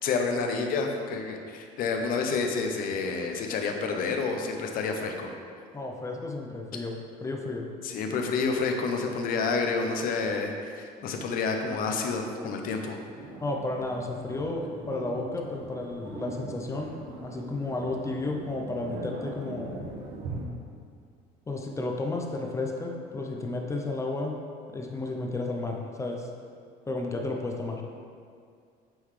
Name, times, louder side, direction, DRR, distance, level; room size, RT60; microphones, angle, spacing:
voice 1, 0.0-5.3 7.8-13.0, left 4 dB, 60° left, 4 dB, 0.7 m, -29 dB
voice 2, 5.7-7.7 13.4-17.0 17.2-19.8 21.5-24.4 24.7-26.3 26.9-27.8, left 2 dB, 15° left, 1 dB, 0.6 m, -32 dB
sound 1, 13.2-20.5, right 2 dB, 80° right, 1.0 m, -41 dB
8.9 x 3.9 x 3.2 m, 2.2 s
cardioid pair, 135°, 17 cm